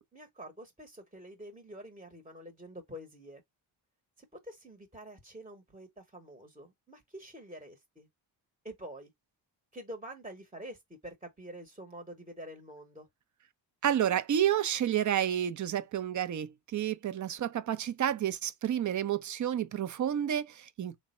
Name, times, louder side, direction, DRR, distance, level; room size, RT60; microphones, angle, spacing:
voice 1, 0.1-3.4 4.2-8.1 8.6-9.1 9.7-13.1, right 1 dB, 15° right, 0.9 m, -47 dB
voice 2, 13.8-21.0, right 10 dB, 40° right, 0.5 m, -30 dB
3.4 x 2.2 x 4.2 m
cardioid pair, 65°, 47 cm